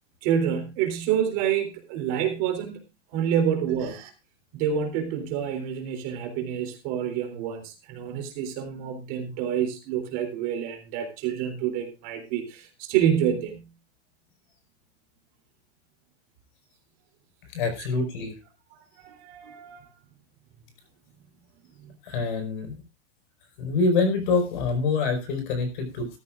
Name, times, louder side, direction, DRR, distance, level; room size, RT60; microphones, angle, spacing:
voice 1, 0.2-2.8 3.1-4.1 4.5-13.7 17.8-17.9 19.0-19.8, right 9 dB, 35° right, 3 dB, 3.4 m, -28 dB
voice 2, 17.5-18.3 22.0-22.8 23.6-26.1, left 4 dB, 50° left, 7 dB, 5.1 m, -25 dB
15.5 x 14.0 x 2.5 m, 0.28 s
supercardioid pair, 175°, 33 cm